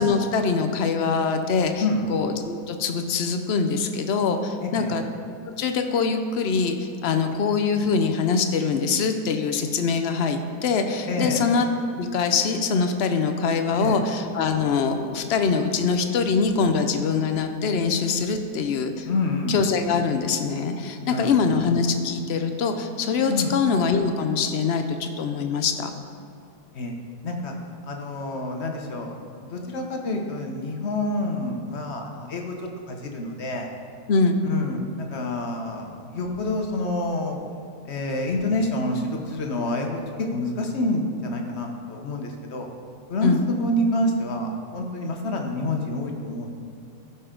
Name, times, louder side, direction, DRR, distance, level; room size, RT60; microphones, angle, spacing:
voice 1, 0.0-1.8 2.1-5.0 5.6-11.7 11.9-19.1 19.5-25.9 34.1-34.4 43.2-43.4, left 5 dB, 70° left, 6 dB, 0.6 m, -23 dB
voice 2, 4.6-5.0 11.1-11.4 13.7-14.0 19.0-19.6 21.1-21.3 23.3-23.5 26.7-26.9 27.2-27.5 27.8-32.5 32.9-33.7 34.4-37.4 37.8-42.7 43.1-46.5, left 2 dB, 45° left, 2 dB, 1.1 m, -28 dB
15.0 x 5.6 x 3.8 m, 2.3 s
omnidirectional pair, 1.8 m